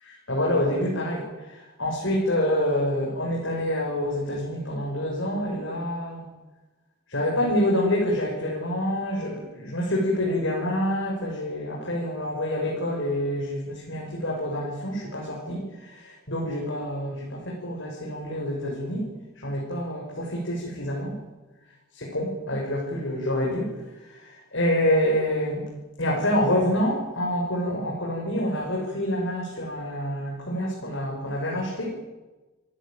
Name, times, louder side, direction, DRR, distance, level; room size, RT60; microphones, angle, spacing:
voice 1, 0.0-6.3 7.1-19.1 19.4-21.1 21.9-23.7 24.1-25.6 26.0-31.9, left 1 dB, 55° left, -3 dB, 7.1 m, -27 dB
28.0 x 18.0 x 9.3 m, 1.2 s
head